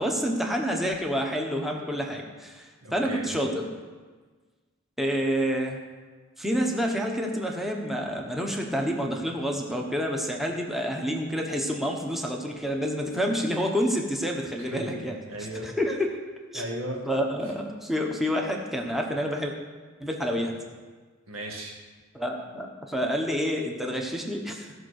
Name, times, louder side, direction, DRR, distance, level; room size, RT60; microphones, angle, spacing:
voice 1, 0.0-3.7 5.0-5.8 6.4-15.2 15.6-16.2 16.5-16.6 17.0-19.5 20.0-20.5 22.1-24.7, equal, ahead, 0 dB, 1.1 m, -28 dB
voice 2, 2.8-3.2 14.6-15.7 16.5-17.0 21.3-21.8, right 1 dB, 70° right, 0 dB, 2.0 m, -36 dB
15.0 x 5.3 x 6.4 m, 1.4 s
head